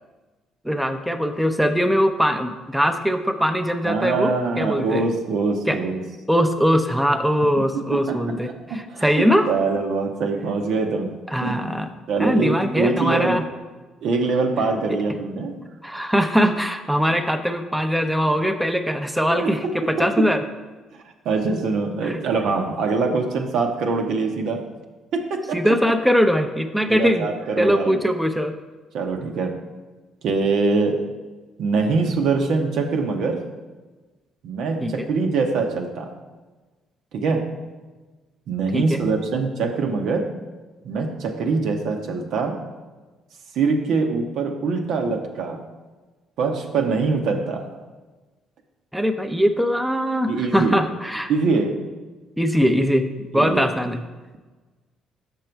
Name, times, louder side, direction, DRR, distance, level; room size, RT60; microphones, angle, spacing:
voice 1, 0.6-5.0 5.7-5.8 6.3-9.5 11.3-11.9 12.2-13.4 15.8-20.4 22.0-22.2 25.5-27.3 27.6-28.5 34.8-35.1 38.7-39.0 48.9-51.3 52.4-53.1 53.3-54.0, equal, 5° right, 6 dB, 0.6 m, -21 dB
voice 2, 3.8-6.0 7.4-11.6 12.1-13.4 14.0-15.6 19.3-20.3 21.2-24.6 25.1-25.7 26.9-28.0 28.9-29.5 30.2-31.0 31.6-33.5 34.4-36.1 37.1-37.6 38.5-40.4 40.8-42.6 43.5-45.6 46.4-47.7 50.3-50.8 51.3-51.9 53.3-53.7, right 4 dB, 70° right, 3 dB, 0.8 m, -24 dB
6.6 x 5.4 x 4.5 m, 1.3 s
supercardioid pair, 60°, 0 cm